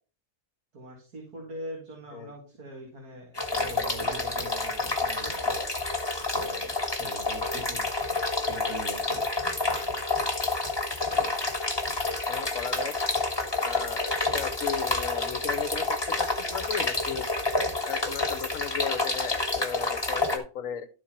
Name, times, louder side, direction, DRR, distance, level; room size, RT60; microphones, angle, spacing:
voice 1, 0.7-5.6 6.3-7.9 8.5-9.2, equal, 80° right, -2 dB, 2.8 m, -42 dB
sound 1, 3.3-20.4, left 3 dB, 15° left, 1.5 m, -29 dB
voice 2, 12.3-13.0 13.6-17.3 17.9-20.9, left 8 dB, 65° left, 13 dB, 1.2 m, -35 dB
12.5 x 4.4 x 4.4 m, 0.37 s
omnidirectional pair, 1.6 m